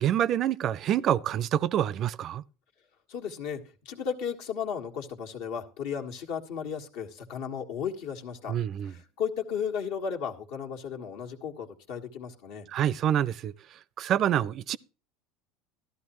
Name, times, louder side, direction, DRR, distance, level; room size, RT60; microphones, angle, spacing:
voice 1, 0.0-2.4 8.5-8.9 12.7-13.5 14.0-14.8, right 10 dB, 50° right, 0.5 m, -26 dB
voice 2, 3.1-8.5 8.8-12.7, left 7 dB, 75° left, 1.5 m, -35 dB
13.5 x 12.0 x 3.0 m
hypercardioid pair, 90°, 0 cm